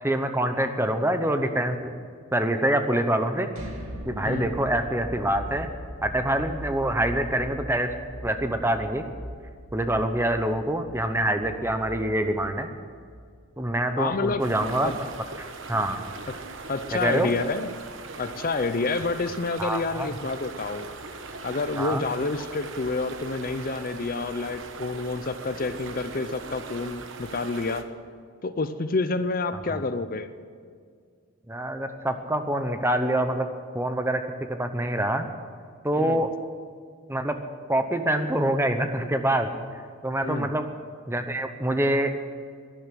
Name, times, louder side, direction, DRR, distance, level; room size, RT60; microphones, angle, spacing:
voice 1, 0.0-2.1 2.3-3.5 4.1-5.7 6.0-7.9 8.2-9.0 9.7-12.7 13.6-15.0 15.4-16.0 16.9-17.3 19.6-20.1 21.8-22.0 29.7-29.8 31.5-33.5 33.7-34.2 34.5-35.2 35.8-36.3 37.1-37.3 37.7-39.6 40.0-40.7 41.1-42.1, right 1 dB, 10° right, 7 dB, 0.8 m, -25 dB
sound 1, 3.5-15.3, equal, 80° right, 2.2 m, -40 dB
voice 2, 14.0-14.4 14.8-14.9 16.3-16.4 16.7-17.7 18.2-20.9 21.4-27.9 28.4-30.3 35.9-36.2 40.2-40.5, left 3 dB, 40° left, 11 dB, 0.6 m, -28 dB
sound 2, 14.4-27.8, right 3 dB, 60° right, 1.2 m, -40 dB
12.0 x 11.0 x 9.9 m, 2.1 s
head